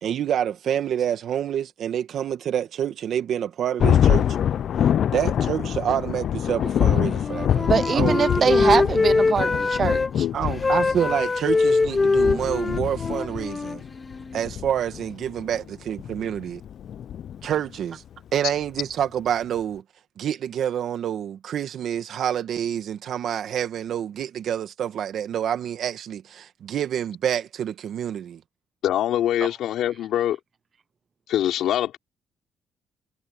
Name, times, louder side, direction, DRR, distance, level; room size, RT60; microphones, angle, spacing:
voice 1, 0.0-4.3 5.1-8.8 10.3-13.8 14.3-16.6 17.4-18.0 18.3-19.8 20.2-28.4, right 9 dB, 70° right, 2.1 m, -27 dB
Thunder, 3.8-17.8, left 9 dB, 65° left, 0.6 m, -25 dB
Wind instrument woodwind instrument, 7.1-10.1 10.6-14.4, left 3 dB, 25° left, 3.4 m, -23 dB
voice 2, 7.7-10.2, right 6 dB, 45° right, 0.9 m, -23 dB
voice 3, 28.8-30.4 31.3-32.0, left 11 dB, 80° left, 3.5 m, -23 dB
cardioid pair, 90°, 0 cm